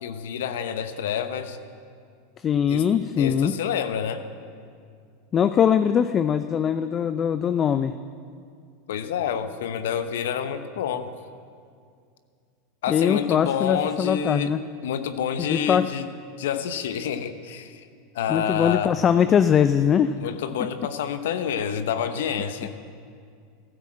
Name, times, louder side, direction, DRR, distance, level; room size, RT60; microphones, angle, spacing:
voice 1, 0.0-1.6 2.7-2.8 3.2-4.3 8.9-11.1 12.8-14.5 14.8-16.1 16.4-17.8 18.1-18.9 20.2-22.7, left 8 dB, 75° left, 10 dB, 1.0 m, -28 dB
voice 2, 2.4-3.6 5.3-8.0 12.9-14.6 15.5-15.9 18.3-20.1, left 8 dB, 35° left, 12 dB, 0.5 m, -21 dB
14.5 x 13.0 x 7.5 m, 2.3 s
hypercardioid pair, 100°, 0 cm